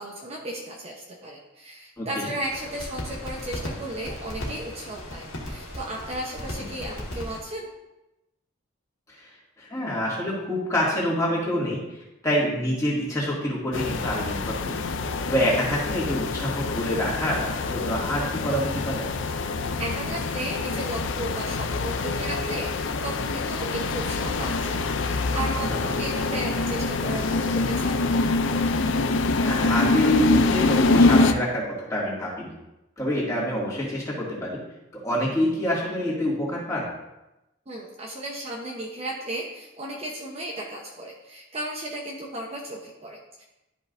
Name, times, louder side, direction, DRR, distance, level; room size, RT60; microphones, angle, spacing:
voice 1, 0.0-7.7 19.8-28.0 37.7-43.4, right 1 dB, 30° right, -2 dB, 0.9 m, -35 dB
sound 1, 2.4-7.4, left 1 dB, 90° left, 1.9 m, -36 dB
voice 2, 9.6-11.8 12.2-14.8 15.3-19.1 25.6-25.9 28.9-32.6 33.0-34.6 34.9-36.9, equal, 15° left, -6 dB, 2.2 m, -26 dB
sound 2, 13.7-31.3, left 3 dB, 60° left, 0.5 m, -25 dB
12.5 x 5.4 x 2.6 m, 0.94 s
head